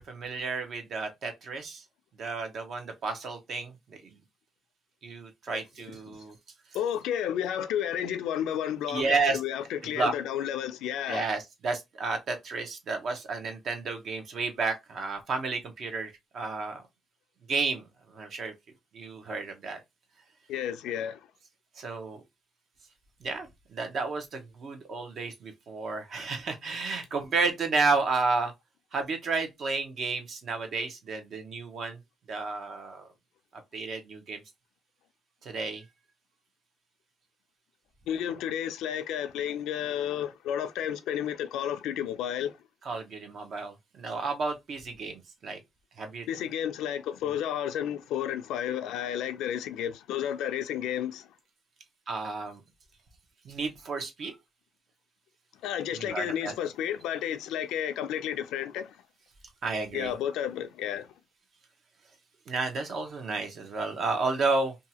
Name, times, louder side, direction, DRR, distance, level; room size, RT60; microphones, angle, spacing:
voice 1, 0.0-1.8 2.2-4.2 5.0-6.3 8.9-9.4 9.9-10.1 11.1-16.8 17.5-18.5 18.9-19.8 21.8-22.2 23.2-28.5 28.9-32.0 32.3-33.1 33.7-34.4 35.4-35.8 42.9-45.6 46.0-46.3 52.1-52.6 53.4-54.4 55.9-56.5 59.6-60.1 62.5-64.7, right 4 dB, 60° right, 0.8 m, -32 dB
voice 2, 6.7-11.3 20.5-21.2 38.1-42.5 46.3-51.3 55.6-59.0 59.9-61.1, left 10 dB, 90° left, 0.3 m, -32 dB
2.7 x 2.3 x 2.8 m
cardioid pair, 90°, 0 cm